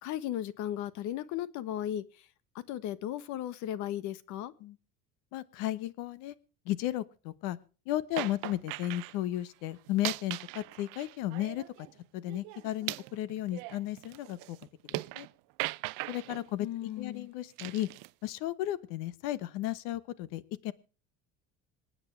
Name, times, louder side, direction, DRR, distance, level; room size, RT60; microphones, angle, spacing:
voice 1, 0.0-2.0 2.7-4.5 16.6-17.3, left 11 dB, 65° left, 17 dB, 1.3 m, -36 dB
voice 2, 5.3-6.3 6.6-7.6 7.9-11.9 12.1-14.6 14.8-15.3 16.1-17.9 18.2-20.7, left 14 dB, 90° left, 17 dB, 1.2 m, -34 dB
sound 1, 8.2-9.1 9.9-11.9 12.3-15.3 15.6-16.4 17.6-18.1, right 25 dB, 85° right, 0.6 m, -39 dB
26.5 x 8.9 x 3.3 m, 0.36 s
cardioid pair, 155°, 31 cm